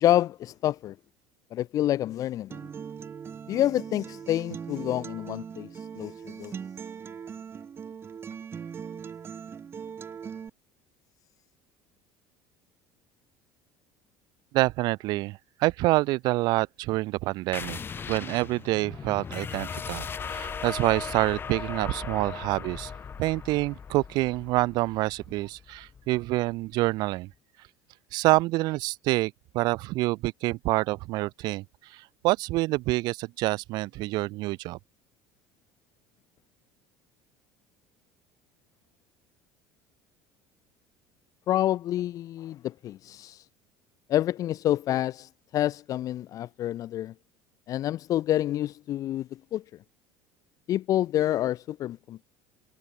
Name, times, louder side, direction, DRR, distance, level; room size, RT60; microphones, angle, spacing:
voice 1, 0.0-0.9 1.5-2.6 3.5-5.7 6.0-6.5 41.5-43.4 44.1-47.1 47.7-49.6 50.7-52.2, left 13 dB, 45° left, 0.7 m, -28 dB
Acoustic guitar, 2.5-10.5, right 7 dB, 30° right, 4.4 m, -40 dB
voice 2, 14.5-17.8 18.1-22.9 23.2-27.3 28.1-34.8, right 20 dB, 65° right, 0.7 m, -27 dB
sound 1, 17.5-26.7, left 6 dB, 30° left, 3.5 m, -38 dB
supercardioid pair, 115°, 8 cm